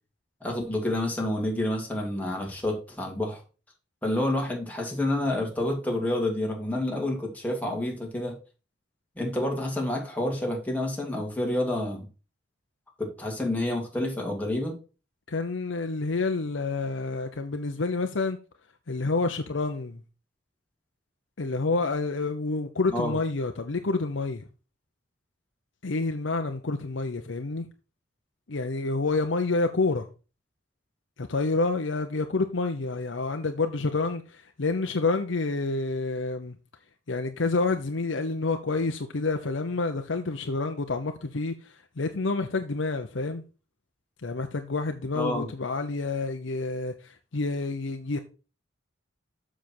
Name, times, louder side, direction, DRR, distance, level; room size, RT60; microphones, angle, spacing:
voice 1, 0.4-3.4 4.0-8.4 9.2-12.1 13.0-14.8 22.9-23.2 45.2-45.5, left 1 dB, 10° left, 2.6 m, -29 dB
voice 2, 15.3-18.4 18.9-20.0 21.4-24.4 25.8-27.7 28.5-30.1 31.2-36.6 37.1-43.4 44.2-48.2, left 3 dB, 75° left, 0.8 m, -28 dB
7.4 x 6.3 x 4.4 m
head